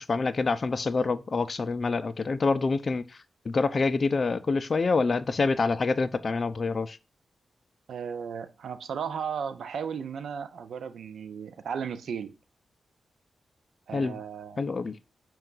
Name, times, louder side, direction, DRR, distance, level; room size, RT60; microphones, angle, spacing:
voice 1, 0.0-3.0 3.5-7.0 13.9-14.2 14.6-15.0, left 4 dB, 45° left, 0.3 m, -26 dB
voice 2, 7.9-12.3 13.9-14.7, right 7 dB, 85° right, 0.3 m, -35 dB
5.4 x 2.3 x 3.8 m
cardioid pair, 95°, 0 cm